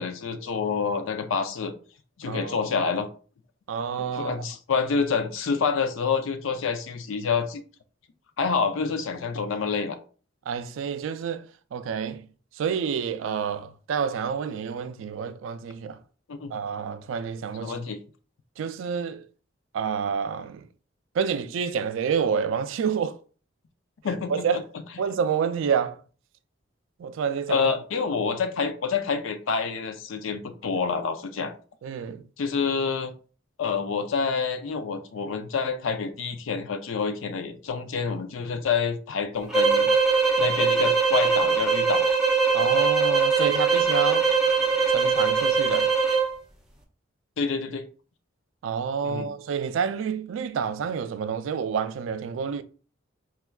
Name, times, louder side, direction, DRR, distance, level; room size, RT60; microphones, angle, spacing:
voice 1, 0.0-1.7 2.2-3.1 4.1-7.6 8.4-10.0 16.3-16.5 17.6-18.0 24.0-24.6 27.5-31.5 32.4-33.1 33.6-39.9 40.4-42.1 47.4-47.9 49.0-49.3, left 5 dB, 85° left, 0.4 m, -27 dB
voice 2, 2.2-2.6 3.7-4.5 10.5-12.3 12.5-16.0 16.5-17.7 18.6-19.2 19.7-20.7 21.1-23.2 24.3-24.6 25.0-26.0 27.0-27.7 31.8-32.3 42.5-44.3 44.9-45.9 48.6-52.6, right 6 dB, 80° right, 0.3 m, -28 dB
sound 1, 39.5-46.3, right 5 dB, 5° right, 0.5 m, -21 dB
4.3 x 2.3 x 2.2 m
head